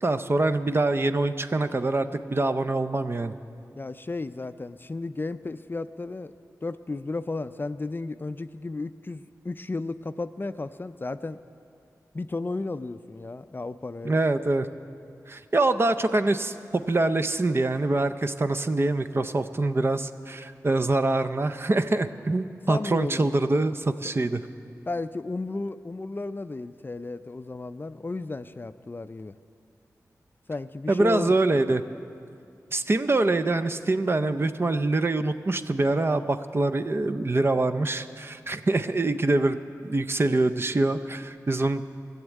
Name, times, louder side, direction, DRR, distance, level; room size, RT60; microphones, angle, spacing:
voice 1, 0.0-3.3 14.0-14.7 15.3-24.4 30.9-31.8 32.7-41.8, right 2 dB, 40° right, 9 dB, 0.5 m, -25 dB
voice 2, 3.8-6.3 6.6-11.4 12.1-14.2 22.7-23.4 24.9-29.4 30.5-31.4, left 3 dB, 35° left, 12 dB, 0.4 m, -33 dB
14.5 x 7.2 x 9.0 m, 2.4 s
cardioid pair, 60°, 6 cm